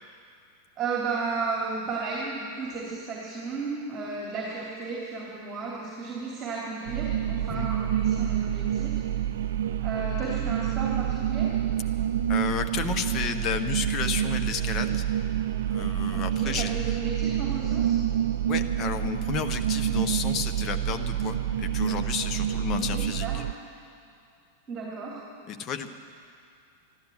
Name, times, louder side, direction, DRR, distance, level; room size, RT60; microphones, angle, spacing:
voice 1, 0.8-9.0 9.8-11.5 16.1-18.0 22.8-23.4 24.7-25.2, right 4 dB, 25° right, -4 dB, 3.1 m, -34 dB
sound 1, 6.8-23.5, right 10 dB, 60° right, 0.4 m, -28 dB
voice 2, 12.3-15.0 15.7-16.7 18.4-23.4 25.5-25.9, left 7 dB, 35° left, 7 dB, 1.0 m, -32 dB
13.0 x 12.0 x 9.0 m, 2.4 s
figure-of-eight pair, 90°, 0 cm